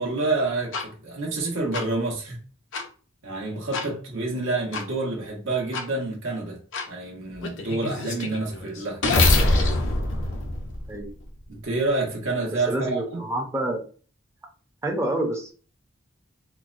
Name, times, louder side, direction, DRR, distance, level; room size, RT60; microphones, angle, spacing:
voice 1, 0.0-2.4 3.2-6.6 6.9-9.0 11.5-13.2, right 2 dB, 70° right, 1.2 m, -28 dB
sound 1, 0.7-0.8 1.7-1.8 2.7-2.8 3.7-3.9 4.7-4.8 5.7-5.8 6.7-6.9 7.4-11.3, left 2 dB, 65° left, 0.6 m, -24 dB
voice 2, 12.7-13.9 14.8-15.5, right 1 dB, 15° right, 0.6 m, -28 dB
4.4 x 2.2 x 2.5 m
head